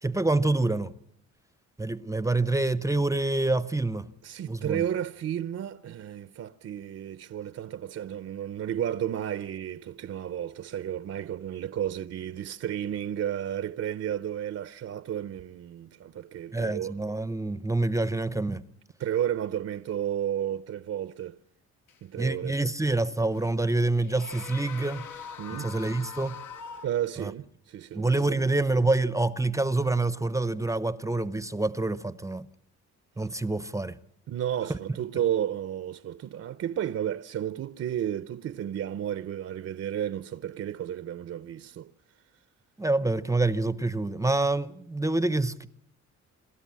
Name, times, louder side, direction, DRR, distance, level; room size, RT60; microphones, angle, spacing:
voice 1, 0.0-0.9 1.8-4.1 4.5-4.8 16.5-18.6 22.2-25.0 25.5-26.4 27.2-27.3 27.9-32.5 33.2-34.0 34.7-34.8 42.8-45.7, right 2 dB, 10° right, 0.7 m, -27 dB
voice 2, 4.2-17.0 19.0-21.4 22.0-22.6 25.4-25.7 26.8-28.4 34.3-41.9, right 10 dB, 55° right, 0.7 m, -32 dB
sound 1, 21.9-22.0 23.3-23.5 23.9-26.9, left 6 dB, 80° left, 1.8 m, -42 dB
27.0 x 13.0 x 7.5 m
cardioid pair, 90°, 30 cm